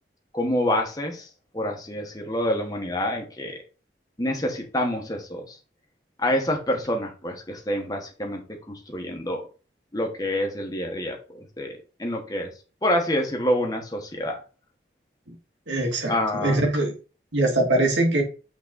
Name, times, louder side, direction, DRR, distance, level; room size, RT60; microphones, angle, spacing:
voice 1, 0.3-1.3 1.5-3.6 4.2-5.6 6.2-9.5 9.9-11.2 11.6-12.5 12.8-14.4 16.1-16.6, left 1 dB, 20° left, 2 dB, 1.2 m, -27 dB
voice 2, 15.7-16.9 17.3-18.2, right 2 dB, 90° right, 1 dB, 2.1 m, -22 dB
6.0 x 3.9 x 4.0 m, 0.34 s
head